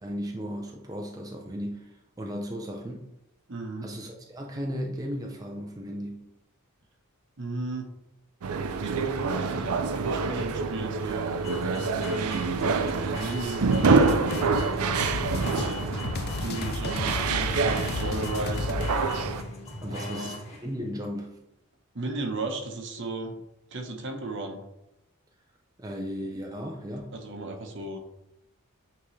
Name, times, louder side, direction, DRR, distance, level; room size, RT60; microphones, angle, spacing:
voice 1, 0.0-3.1 3.8-6.2 19.8-20.4 20.6-21.4 25.8-27.1, equal, 15° right, 0 dB, 0.5 m, -35 dB
voice 2, 3.5-3.9 7.4-7.9 8.8-11.4 11.9-14.4 15.4-16.1 16.4-18.7 19.9-20.4 21.9-23.4 23.7-24.6 27.1-28.0, right 2 dB, 55° right, 4 dB, 0.9 m, -35 dB
sound 1, 8.4-19.4, right 4 dB, 85° right, 0.5 m, -27 dB
sound 2, 9.8-20.8, left 2 dB, 30° left, 1.9 m, -40 dB
sound 3, 13.8-19.0, left 3 dB, 45° left, 0.4 m, -33 dB
8.4 x 3.7 x 3.2 m, 0.88 s
head